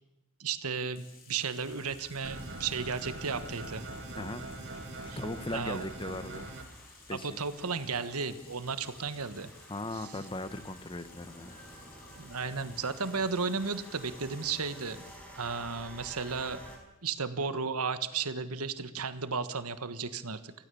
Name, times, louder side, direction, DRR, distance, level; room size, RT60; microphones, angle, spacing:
voice 1, 0.4-3.8 5.1-5.2 5.5-5.9 7.1-9.5 9.9-10.1 12.2-15.1 15.4-16.6 17.0-20.5, right 5 dB, 80° right, 11 dB, 1.4 m, -34 dB
Bathtub (filling or washing), 0.6-15.3, left 5 dB, 40° left, 3.9 m, -57 dB
sound 1, 1.6-16.8, equal, 5° left, 5.8 m, -52 dB
sound 2, 2.2-6.6, right 2 dB, 55° right, 2.7 m, -42 dB
voice 2, 5.2-6.5 7.1-7.4 9.7-11.5, left 2 dB, 25° left, 12 dB, 1.1 m, -38 dB
25.5 x 16.5 x 7.0 m, 1.0 s
head